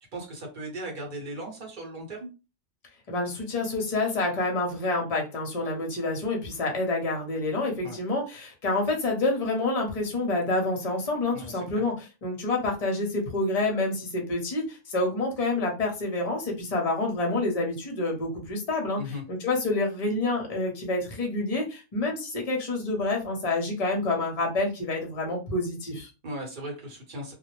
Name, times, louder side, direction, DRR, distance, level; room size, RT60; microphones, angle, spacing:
voice 1, 0.0-2.3 7.8-8.0 11.3-11.9 19.0-19.2 26.2-27.3, right 1 dB, 45° right, -1 dB, 1.0 m, -37 dB
voice 2, 3.1-26.1, left 2 dB, 35° left, 1 dB, 0.8 m, -28 dB
2.4 x 2.0 x 3.1 m, 0.29 s
omnidirectional pair, 1.2 m